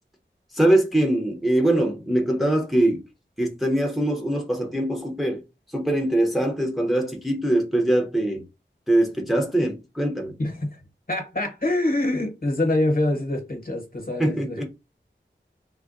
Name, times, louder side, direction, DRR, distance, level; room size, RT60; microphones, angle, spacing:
voice 1, 0.5-3.0 3.4-5.4 5.7-8.4 8.9-10.3 14.2-14.6, right 1 dB, ahead, 0.7 m, -22 dB
voice 2, 10.4-10.8 11.1-14.6, left 1 dB, 50° left, 1.0 m, -25 dB
3.4 x 2.2 x 2.5 m
wide cardioid pair, 50°, 20 cm